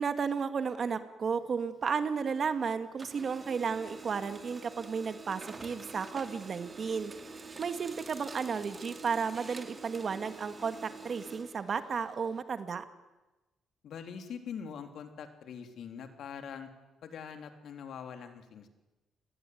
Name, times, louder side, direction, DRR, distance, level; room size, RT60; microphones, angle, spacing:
voice 1, 0.0-7.1 7.6-12.8, right 6 dB, 45° right, 9 dB, 2.2 m, -33 dB
Printer, 1.3-2.6 2.9-12.4, right 3 dB, 30° right, 2.7 m, -47 dB
voice 2, 13.8-16.7 17.0-18.7, left 7 dB, 70° left, 6 dB, 3.4 m, -43 dB
28.0 x 20.5 x 9.5 m, 1.1 s
cardioid pair, 100°, 0 cm